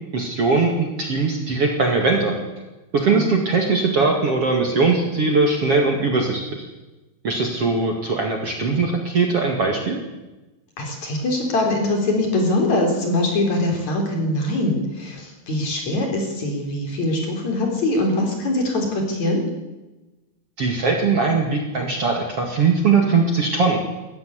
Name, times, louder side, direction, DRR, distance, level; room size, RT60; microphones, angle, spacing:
voice 1, 0.1-2.4 2.9-6.6 7.2-10.0 20.6-23.8, right 4 dB, 45° right, 2 dB, 2.7 m, -20 dB
voice 2, 10.8-19.4, left 1 dB, 45° left, 2 dB, 5.0 m, -22 dB
21.0 x 14.0 x 9.7 m, 1.1 s
omnidirectional pair, 4.6 m